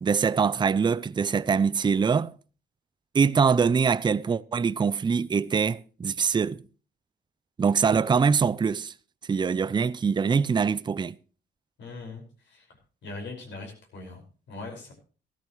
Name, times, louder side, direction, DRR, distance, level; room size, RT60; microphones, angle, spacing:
voice 1, 0.0-2.3 3.1-6.6 7.6-8.9 9.3-11.1, right 5 dB, 25° right, 0.5 m, -23 dB
voice 2, 11.8-12.7 13.0-14.2 14.5-14.9, left 3 dB, 65° left, 5.4 m, -40 dB
14.5 x 13.5 x 3.1 m
cardioid pair, 90°, 20 cm